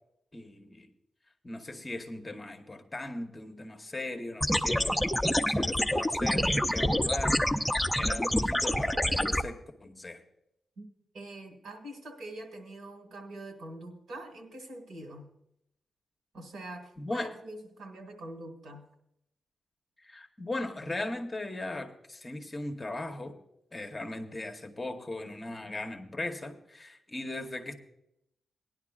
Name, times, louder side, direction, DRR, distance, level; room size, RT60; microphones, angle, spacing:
voice 1, 0.3-0.9 1.4-10.2 17.0-17.3 20.0-23.3 23.7-27.7, left 2 dB, 25° left, 5 dB, 1.0 m, -38 dB
sound 1, 4.4-9.4, equal, ahead, 0.5 m, -27 dB
voice 2, 11.1-15.3 16.3-18.8, right 1 dB, 80° right, 4 dB, 2.0 m, -44 dB
18.0 x 10.5 x 2.4 m, 0.79 s
cardioid pair, 95°, 0 cm